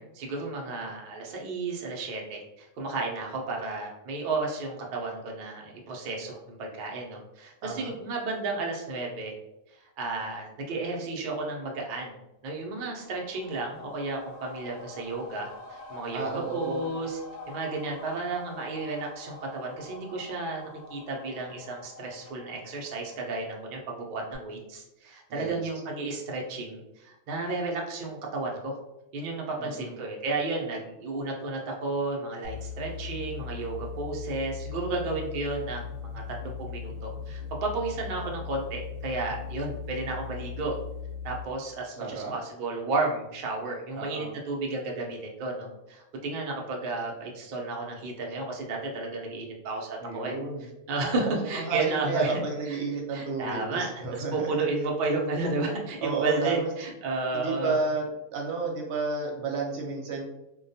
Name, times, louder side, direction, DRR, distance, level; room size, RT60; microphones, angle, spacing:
voice 1, 0.0-9.3 9.8-12.1 12.4-17.2 17.5-28.8 29.1-35.8 36.1-40.8 41.2-50.4 50.9-52.4 52.7-52.8 53.1-57.8, right 3 dB, 85° right, -1 dB, 0.4 m, -32 dB
voice 2, 7.6-7.9 16.1-16.9 25.3-25.6 29.6-30.0 42.0-42.3 43.9-44.3 50.0-50.7 51.2-54.5 56.0-56.7 57.3-58.1 58.3-60.2, right 4 dB, 60° right, -1 dB, 0.8 m, -31 dB
sound 1, 12.6-24.0 24.3-24.4, left 2 dB, 60° left, 0.8 m, -47 dB
sound 2, 32.4-41.6, left 6 dB, 80° left, 1.0 m, -38 dB
2.2 x 2.2 x 2.6 m, 0.92 s
omnidirectional pair, 1.4 m